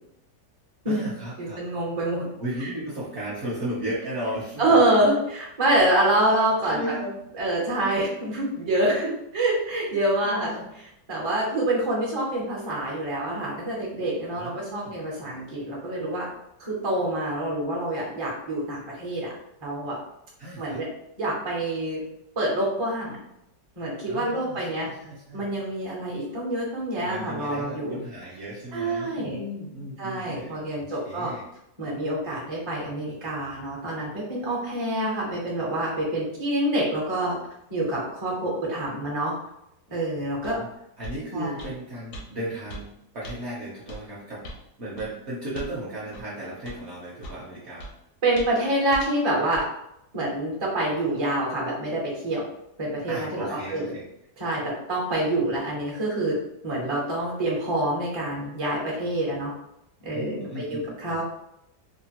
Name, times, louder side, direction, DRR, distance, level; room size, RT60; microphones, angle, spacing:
voice 1, 0.9-1.6 2.4-4.8 6.3-6.4 6.7-7.2 10.2-10.6 14.3-15.0 20.4-20.8 24.1-25.4 27.0-31.4 40.4-40.7 41.0-44.4 44.8-47.9 53.1-54.0 60.1-61.2, right 1 dB, 55° right, -7 dB, 0.8 m, -35 dB
voice 2, 1.4-2.2 2.6-2.7 4.6-6.9 7.4-10.5 11.1-16.3 16.6-19.3 19.6-20.0 20.6-20.9 21.2-22.0 22.4-23.2 23.8-24.9 25.3-28.0 28.7-29.4 30.0-31.3 31.8-37.4 37.7-39.3 39.9-40.6 41.3-41.5 48.2-49.7 50.1-52.4 52.8-53.9 54.4-56.3 56.6-59.5 60.0-61.2, right 1 dB, 30° right, -4 dB, 0.5 m, -26 dB
sound 1, 40.4-40.6 41.0-41.2 41.6-41.7 42.1-42.3 42.7-42.9 43.2-43.4 43.9-44.0 44.4-44.6 45.0-45.1 45.5-45.8 46.1-46.3 46.7-46.8 47.2-47.4 47.8-47.9 48.4-48.6 48.9-49.1 49.5-49.7, right 1 dB, 70° left, 0.9 m, -39 dB
3.0 x 2.1 x 2.8 m, 0.81 s
omnidirectional pair, 1.8 m